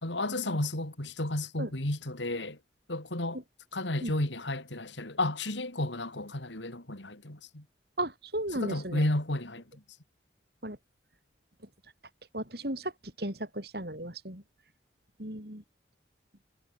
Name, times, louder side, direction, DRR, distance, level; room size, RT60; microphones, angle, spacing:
voice 1, 0.0-2.6 2.9-3.4 3.7-7.6 8.5-9.6, left 1 dB, 80° left, 3.7 m, -32 dB
voice 2, 8.0-9.0 10.6-10.8 12.3-12.9 13.2-14.4 15.2-15.6, right 1 dB, 60° right, 7.6 m, -35 dB
head